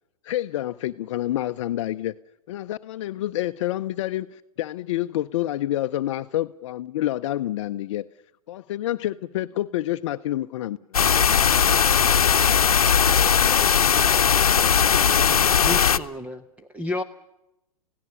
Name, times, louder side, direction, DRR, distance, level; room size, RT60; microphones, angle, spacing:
voice 1, 0.2-2.2 2.5-8.0 8.5-11.2, left 14 dB, 55° left, 9 dB, 0.7 m, -28 dB
sound 1, 10.9-16.0, left 7 dB, 85° left, 0.9 m, -18 dB
voice 2, 13.1-16.1, left 8 dB, 20° left, 9 dB, 3.9 m, -41 dB
voice 3, 15.6-17.0, left 2 dB, 5° right, 7 dB, 1.1 m, -31 dB
28.5 x 17.5 x 6.9 m, 0.91 s
hypercardioid pair, 125°, 18 cm